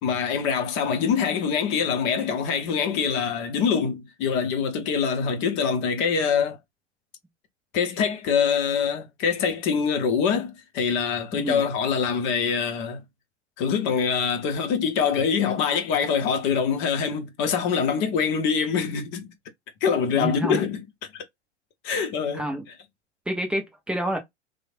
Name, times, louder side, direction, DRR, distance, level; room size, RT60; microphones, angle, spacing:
voice 1, 0.0-6.6 7.7-13.0 13.6-19.3 19.8-20.8 21.1-21.2 21.8-22.4, left 6 dB, 30° left, 0.7 m, -24 dB
voice 2, 20.1-20.6 22.0-22.1 22.3-22.7 23.3-24.2, right 1 dB, 5° right, 0.4 m, -28 dB
3.1 x 2.1 x 2.5 m
figure-of-eight pair, 90°, 36 cm